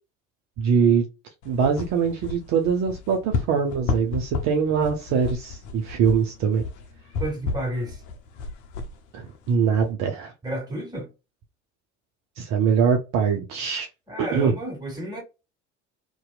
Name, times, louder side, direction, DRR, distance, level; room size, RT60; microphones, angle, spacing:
voice 1, 0.6-1.0 1.4-6.6 9.1-10.3 12.4-13.9 14.2-14.5, right 6 dB, 50° right, 0.6 m, -23 dB
sound 1, 1.4-9.9, left 4 dB, 55° left, 0.7 m, -33 dB
voice 2, 7.2-8.0 10.4-11.1 14.1-15.2, right 1 dB, 10° right, 1.6 m, -31 dB
2.8 x 2.2 x 2.2 m
hypercardioid pair, 65°, 37 cm